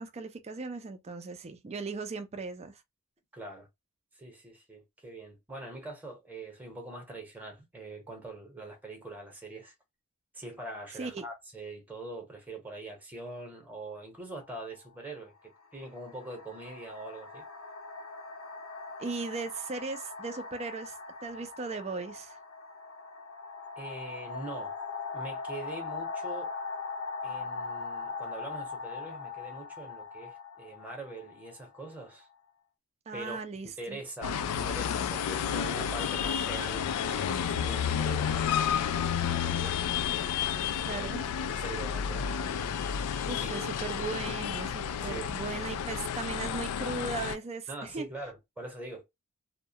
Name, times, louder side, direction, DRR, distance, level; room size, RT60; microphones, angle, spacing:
voice 1, 0.0-2.8 11.0-11.2 19.0-22.4 33.1-34.0 40.8-41.2 43.3-48.1, right 3 dB, 30° right, 0.4 m, -37 dB
voice 2, 3.3-3.7 4.1-9.7 10.3-17.4 23.8-24.8 25.1-26.6 27.2-32.3 33.1-33.4 33.8-39.8 40.8-41.1 41.4-42.3 43.4-43.7 45.0-45.6 47.7-49.0, right 2 dB, 10° right, 0.8 m, -43 dB
sound 1, 14.4-14.6 15.6-32.2, left 4 dB, 70° left, 0.7 m, -41 dB
sound 2, 34.2-47.4, left 8 dB, 90° left, 0.3 m, -31 dB
2.3 x 2.1 x 2.7 m
head